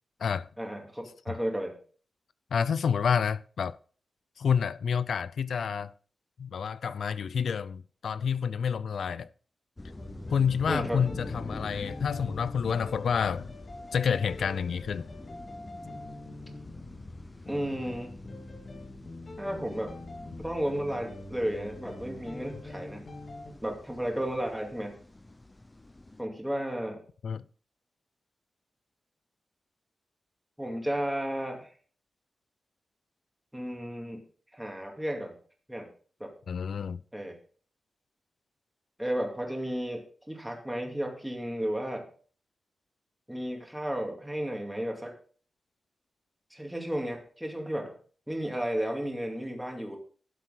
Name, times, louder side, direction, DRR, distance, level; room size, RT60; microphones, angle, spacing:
voice 1, 0.6-1.8 10.6-11.0 17.5-18.1 19.4-20.0 20.4-23.0 23.6-25.0 26.2-27.0 30.6-31.7 33.5-34.2 34.5-35.4 35.7-35.9 36.2-36.3 37.1-37.4 39.0-42.1 43.3-45.1 46.5-47.9 48.3-50.0, equal, 5° right, 2.4 m, -33 dB
voice 2, 2.5-3.8 4.4-5.9 6.4-9.3 10.3-13.5 13.9-15.1 27.2-27.4 36.5-37.0, left 7 dB, 80° left, 0.4 m, -29 dB
sound 1, 9.8-26.2, left 2 dB, 15° left, 0.9 m, -45 dB
sound 2, 10.0-23.5, left 2 dB, 50° left, 3.2 m, -45 dB
12.5 x 7.9 x 3.9 m
wide cardioid pair, 150°, 0 cm